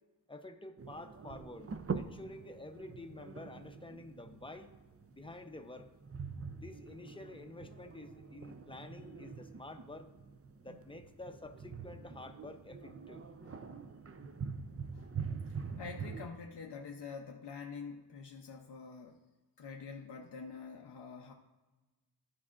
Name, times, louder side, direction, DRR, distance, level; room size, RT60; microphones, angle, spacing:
voice 1, 0.3-4.7 5.1-5.9 6.5-10.1 10.6-13.2, left 2 dB, 15° left, 7 dB, 0.6 m, -49 dB
sound 1, 0.8-16.3, right 5 dB, 35° right, 0.4 m, -45 dB
voice 2, 15.8-19.2 19.6-21.3, left 5 dB, 75° left, 1 dB, 0.6 m, -46 dB
12.5 x 4.7 x 2.4 m, 1.2 s
wide cardioid pair, 50°, 41 cm